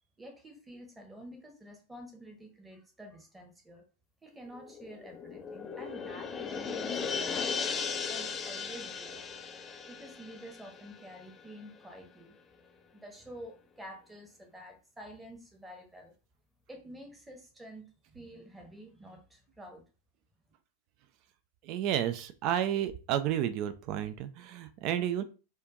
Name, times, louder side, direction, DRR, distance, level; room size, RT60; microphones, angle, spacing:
voice 1, 0.2-3.8 4.2-9.2 9.9-12.4 12.9-16.1 16.7-19.8, equal, 10° right, 3 dB, 1.0 m, -49 dB
sound 1, 4.5-11.5 11.8-11.9, left 5 dB, 25° left, 0.4 m, -37 dB
voice 2, 21.6-25.2, right 10 dB, 40° right, 11 dB, 0.4 m, -31 dB
4.4 x 2.5 x 2.4 m, 0.34 s
figure-of-eight pair, 90°, 0 cm